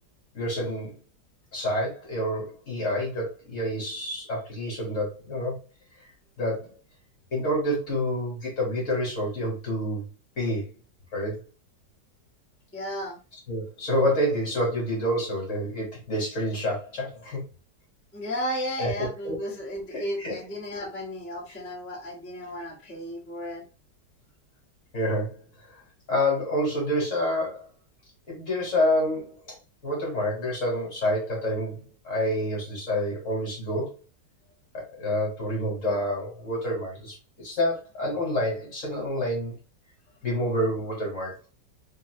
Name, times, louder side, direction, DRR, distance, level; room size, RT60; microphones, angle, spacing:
voice 1, 0.3-1.0 1.5-5.6 6.4-6.7 7.3-10.0 10.4-10.7 11.1-11.4 13.5-17.4 18.8-19.3 19.9-20.4 24.9-25.4 25.7-25.8 26.1-27.7 28.3-29.5 29.8-34.0 34.7-39.6 40.2-41.3, equal, 50° left, 1.6 m, -28 dB
voice 2, 12.7-13.2 18.1-23.6, equal, 10° left, 0.7 m, -34 dB
3.1 x 2.7 x 2.6 m
omnidirectional pair, 1.9 m